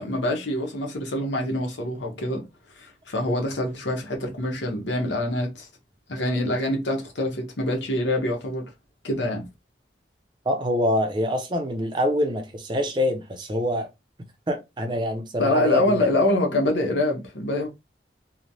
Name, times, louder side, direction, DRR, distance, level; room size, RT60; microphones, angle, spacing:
voice 1, 0.0-2.4 2.8-5.7 6.1-8.6 9.0-9.5 15.4-17.7, left 1 dB, 85° left, 0.9 m, -25 dB
voice 2, 10.5-13.9 14.5-16.1, left 1 dB, 25° right, 0.4 m, -25 dB
3.1 x 2.1 x 2.6 m
head